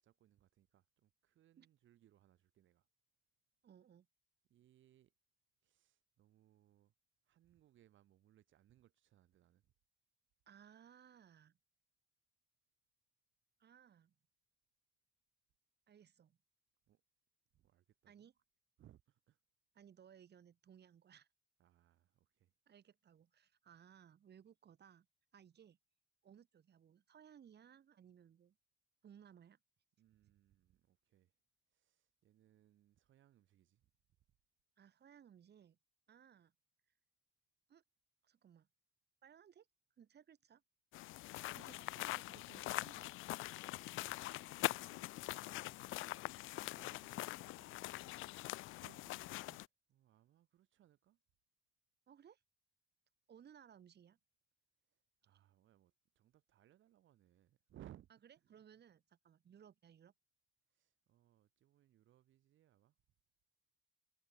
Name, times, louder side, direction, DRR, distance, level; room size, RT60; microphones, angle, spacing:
voice 1, 0.0-2.9 4.5-5.1 5.6-6.9 7.2-9.7 16.9-17.0 17.5-18.3 18.8-19.4 21.6-22.5 30.0-31.3 31.7-33.9 34.3-34.4 43.8-46.3 46.5-48.6 49.5-51.2 54.9-58.1 60.7-63.0, right 12 dB, 75° right, 4.1 m, -67 dB
voice 2, 3.6-4.1 10.5-11.6 13.6-14.1 15.9-16.4 18.1-18.3 19.7-21.3 22.7-25.1 25.3-25.8 26.2-28.6 29.0-29.6 34.8-35.8 36.1-36.5 37.7-37.8 38.2-38.7 39.2-39.7 40.0-40.6 41.5-43.1 48.8-49.7 52.1-52.4 53.3-54.2 58.5-60.1, right 8 dB, 55° right, 4.5 m, -62 dB
sound 1, 40.9-49.7, left 18 dB, 85° left, 0.4 m, -43 dB
cardioid pair, 90°, 20 cm